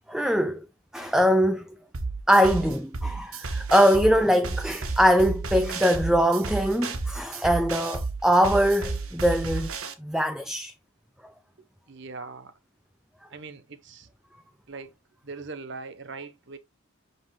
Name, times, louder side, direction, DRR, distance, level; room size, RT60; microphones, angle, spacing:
voice 1, 0.1-0.7 0.9-1.7 2.3-9.7 10.0-10.7, equal, 5° right, 0.4 m, -22 dB
sound 1, 1.9-9.9, right 3 dB, 85° right, 1.3 m, -32 dB
voice 2, 11.9-12.5 13.3-14.1 14.7-14.9 15.2-16.6, right 4 dB, 55° right, 0.9 m, -40 dB
6.5 x 5.4 x 3.1 m
head